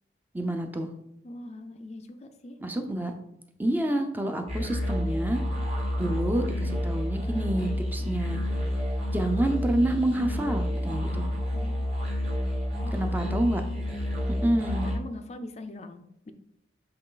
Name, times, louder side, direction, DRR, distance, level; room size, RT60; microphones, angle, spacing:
voice 1, 0.3-0.9 2.6-3.1 3.6-5.4 6.0-8.4 9.1-11.3 12.9-13.6 14.4-14.9, right 1 dB, 10° right, 5 dB, 0.5 m, -28 dB
voice 2, 1.2-2.6 11.5-11.8 12.8-13.0 14.8-16.3, left 2 dB, 40° left, 8 dB, 0.4 m, -42 dB
sound 1, 4.5-14.9, equal, 35° right, 2.2 m, -29 dB
7.9 x 3.2 x 3.9 m, 0.79 s
head